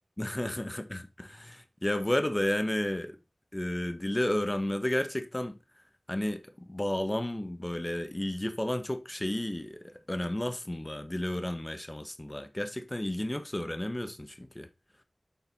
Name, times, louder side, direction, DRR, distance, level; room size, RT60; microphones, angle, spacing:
voice 1, 0.2-3.2 3.5-5.6 6.1-14.7, left 1 dB, 20° left, 0.9 m, -32 dB
7.1 x 4.0 x 4.0 m
wide cardioid pair, 70°, 0 cm